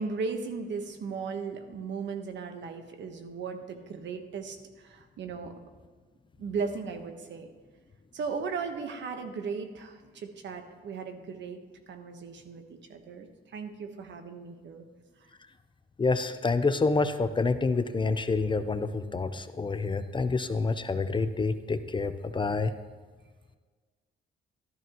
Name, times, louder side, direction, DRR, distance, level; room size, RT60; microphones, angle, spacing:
voice 1, 0.0-5.5 6.4-7.5 8.1-14.9 15.2-15.3, right 5 dB, 65° right, 6 dB, 1.2 m, -37 dB
voice 2, 16.0-22.7, left 3 dB, 25° left, 11 dB, 0.6 m, -28 dB
12.5 x 12.0 x 3.0 m, 1.5 s
cardioid pair, 90°, 20 cm